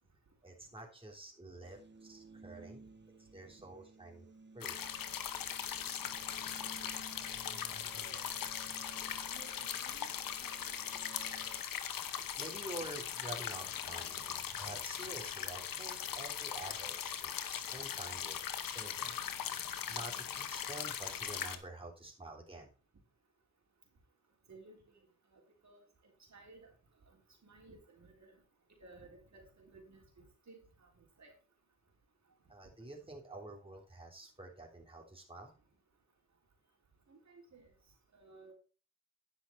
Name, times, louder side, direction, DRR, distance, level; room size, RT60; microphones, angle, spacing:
voice 1, 0.4-2.8 3.2-4.3 4.5-4.8 11.8-12.0 12.4-18.4 18.6-19.4 19.9-22.7 32.5-35.5, right 2 dB, 15° right, 0 dB, 3.4 m, -48 dB
sound 1, 1.6-11.6, right 3 dB, 30° right, 1.1 m, -56 dB
sound 2, 4.6-21.6, left 9 dB, 80° left, 1.1 m, -40 dB
voice 2, 6.5-7.0 7.4-8.2 9.3-10.1 10.4-10.8 24.5-25.0 25.3-25.8 26.3-26.7 27.1-28.4 28.8-30.0 30.5-31.3 37.1-37.7 38.1-38.5, right 3 dB, 55° right, 0 dB, 3.5 m, -58 dB
10.5 x 5.9 x 4.6 m, 0.35 s
cardioid pair, 55°, 34 cm